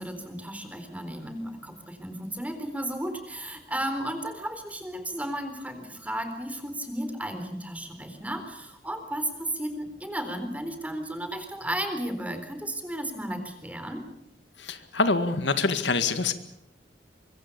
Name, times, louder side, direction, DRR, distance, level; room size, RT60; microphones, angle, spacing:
voice 1, 0.0-14.0, right 1 dB, 10° right, 8 dB, 3.9 m, -34 dB
voice 2, 14.6-16.3, left 3 dB, 85° left, 10 dB, 1.9 m, -25 dB
24.5 x 23.5 x 6.9 m, 0.80 s
head